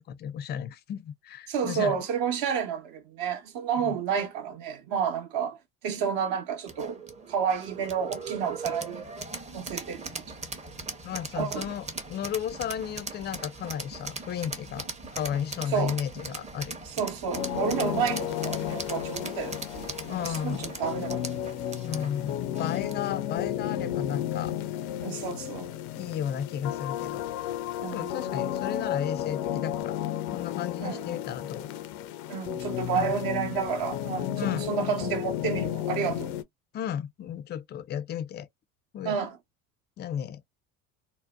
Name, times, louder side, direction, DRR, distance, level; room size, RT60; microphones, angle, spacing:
voice 1, 0.0-2.0 3.8-4.0 11.0-14.9 15.1-16.8 20.1-20.7 21.8-24.5 25.1-25.2 26.0-30.0 30.3-31.7 32.9-33.1 34.4-34.7 36.7-38.5 38.9-39.2 40.0-40.4, left 9 dB, 25° left, 0.3 m, -34 dB
voice 2, 1.5-5.6 5.8-7.0 7.3-9.1 9.5-10.3 11.4-11.7 15.7-16.0 16.9-19.9 20.2-21.4 25.0-25.7 27.8-28.1 30.8-31.0 32.3-36.3 39.0-39.4, right 7 dB, 50° right, 0.9 m, -30 dB
sound 1, 6.7-23.2, right 3 dB, 15° right, 0.6 m, -40 dB
sound 2, 17.3-36.4, left 11 dB, 75° left, 0.5 m, -33 dB
2.6 x 2.1 x 2.3 m
hypercardioid pair, 75°, 44 cm